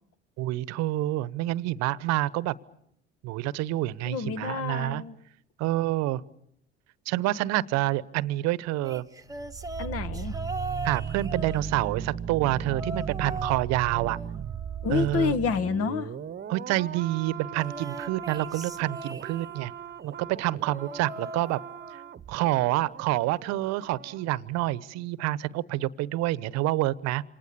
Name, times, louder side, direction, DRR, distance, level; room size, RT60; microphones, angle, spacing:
voice 1, 0.4-2.5 3.2-5.0 5.6-6.2 7.1-9.0 10.8-14.2 14.9-15.3 16.5-19.7 20.0-21.6 22.3-27.2, right 16 dB, 60° right, 20 dB, 1.0 m, -28 dB
voice 2, 4.0-5.1 9.8-10.3 14.8-16.1, left 6 dB, 50° left, 13 dB, 1.7 m, -28 dB
sound 1, 8.8-12.1 12.7-13.7 13.9-15.5 17.5-19.7 20.6-22.1 22.4-22.8 23.9-24.0, right 2 dB, 10° right, 1.2 m, -40 dB
sound 2, 9.3-24.2 24.5-24.7, right 8 dB, 35° right, 1.1 m, -37 dB
28.0 x 26.0 x 6.9 m, 0.72 s
hypercardioid pair, 65°, 30 cm